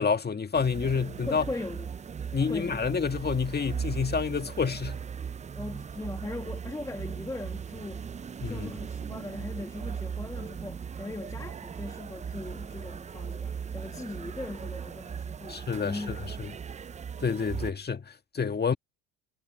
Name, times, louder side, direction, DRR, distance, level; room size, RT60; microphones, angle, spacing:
voice 1, 0.0-1.5 2.3-5.0 8.4-8.7 15.5-16.5 17.2-18.7, left 5 dB, 25° left, 1.9 m, -29 dB
sound 1, 0.5-17.7, right 7 dB, 20° right, 0.5 m, -38 dB
voice 2, 1.2-1.9 2.5-2.8 5.5-8.1 8.4-16.2, left 2 dB, 10° left, 1.3 m, -39 dB
supercardioid pair, 80°, 36 cm